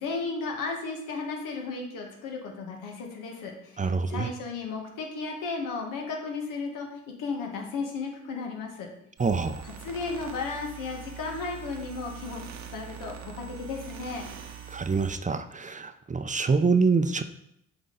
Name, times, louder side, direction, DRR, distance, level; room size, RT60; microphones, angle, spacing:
voice 1, 0.0-6.9 7.2-8.9 9.6-12.4 12.7-14.3, left 4 dB, 85° left, 1 dB, 1.4 m, -34 dB
voice 2, 3.8-4.3 9.2-9.6 14.7-17.2, right 4 dB, 25° right, 9 dB, 0.5 m, -25 dB
sound 1, 9.2-15.2, right 8 dB, 60° right, 0.9 m, -43 dB
7.8 x 3.9 x 3.9 m, 0.77 s
supercardioid pair, 70°, 32 cm